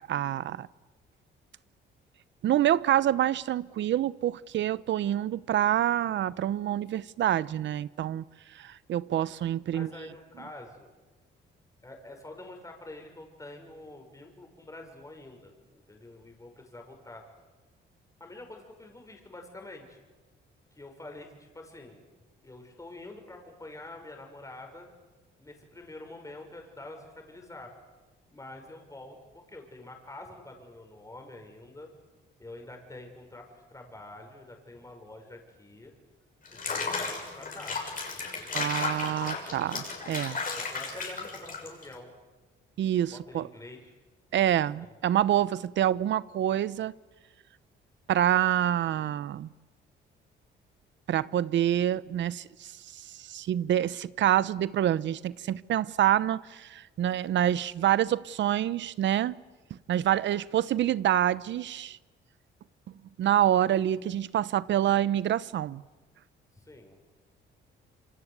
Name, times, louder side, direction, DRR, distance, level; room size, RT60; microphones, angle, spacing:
voice 1, 0.1-0.7 2.4-8.2 8.5-9.9 38.5-40.4 42.8-43.5 44.3-46.9 48.1-49.5 51.1-59.4 59.9-62.0 63.2-65.8, right 11 dB, 70° right, 0.8 m, -27 dB
voice 2, 9.7-10.9 11.8-17.2 18.2-20.0 20.7-22.1 22.4-24.9 25.4-27.7 28.3-31.9 32.4-35.9 36.5-37.8 38.2-38.5 40.5-42.1 43.1-43.9 45.0-45.1 66.5-67.0, left 2 dB, 15° left, 6.0 m, -46 dB
Water / Bathtub (filling or washing), 36.5-41.9, left 4 dB, 45° left, 6.4 m, -34 dB
27.0 x 25.0 x 8.2 m
cardioid pair, 90°, 20 cm